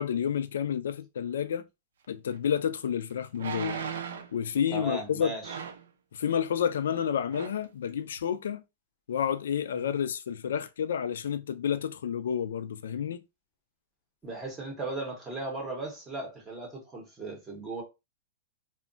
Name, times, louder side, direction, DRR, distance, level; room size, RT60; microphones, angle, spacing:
voice 1, 0.0-1.7 2.1-3.8 4.3-5.3 6.1-8.6 9.1-13.2, left 8 dB, 85° left, 0.3 m, -30 dB
sound 1, 2.3-2.4 3.3-4.4 5.4-5.9 6.9-7.0 7.3-7.6 8.2-8.3, right 6 dB, 80° right, 0.5 m, -37 dB
voice 2, 4.7-5.6 9.7-9.9 14.2-17.8, right 2 dB, 10° right, 0.7 m, -37 dB
2.2 x 2.1 x 3.7 m
supercardioid pair, 180°, 0 cm